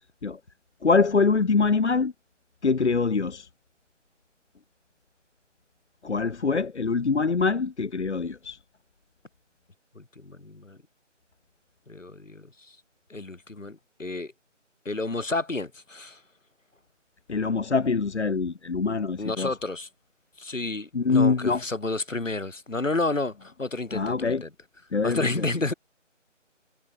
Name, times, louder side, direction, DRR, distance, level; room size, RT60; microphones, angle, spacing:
voice 1, 0.8-2.1 2.6-3.5 6.0-8.6 17.3-19.5 20.9-21.6 23.9-24.4 24.9-25.5, left 4 dB, 65° left, 0.9 m, -24 dB
voice 2, 10.0-10.8 11.9-12.5 13.1-14.3 14.9-16.2 19.2-19.9 20.4-24.5 25.0-25.7, left 2 dB, 80° left, 2.1 m, -30 dB
figure-of-eight pair, 160°, 38 cm